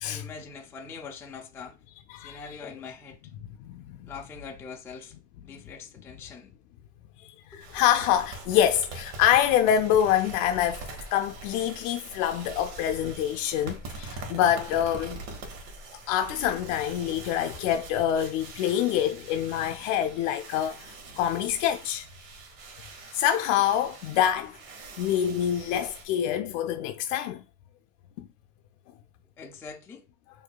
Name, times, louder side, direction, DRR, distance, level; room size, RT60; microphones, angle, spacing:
voice 1, 0.0-1.7 2.2-3.2 4.0-5.1 5.4-6.5 7.5-7.6 29.4-30.0, left 5 dB, 5° left, 0.3 m, -43 dB
voice 2, 2.1-2.6 3.6-4.1 7.2-15.2 16.1-22.1 23.1-24.6 25.0-27.4 28.2-28.3, left 10 dB, 70° left, 0.5 m, -26 dB
sound 1, 7.6-26.0, right 3 dB, 65° right, 1.2 m, -43 dB
4.6 x 2.6 x 2.2 m
supercardioid pair, 135°, 39 cm